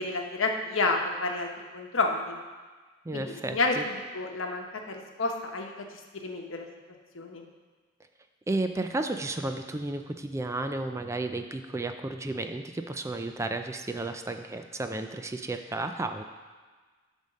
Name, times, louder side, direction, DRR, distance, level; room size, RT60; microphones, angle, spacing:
voice 1, 0.0-2.4 3.1-3.8 4.1-6.7 7.1-7.4, left 3 dB, 80° left, 3 dB, 1.0 m, -30 dB
voice 2, 3.1-3.8 8.5-16.2, right 2 dB, 15° right, 7 dB, 0.3 m, -33 dB
10.5 x 3.5 x 6.4 m, 1.4 s
head